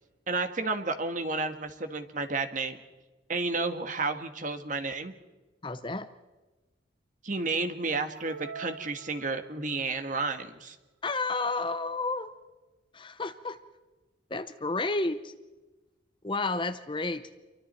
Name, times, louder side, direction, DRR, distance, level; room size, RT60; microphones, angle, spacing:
voice 1, 0.3-2.8 3.3-5.1 7.2-10.7, right 3 dB, 40° right, 7 dB, 1.5 m, -31 dB
voice 2, 5.6-6.1 11.0-12.3 12.9-13.6 14.3-15.3 16.2-17.3, left 3 dB, 25° left, 11 dB, 0.7 m, -31 dB
sound 1, 8.2-9.8, right 6 dB, 75° right, 0.9 m, -44 dB
28.5 x 24.0 x 4.4 m, 1.2 s
head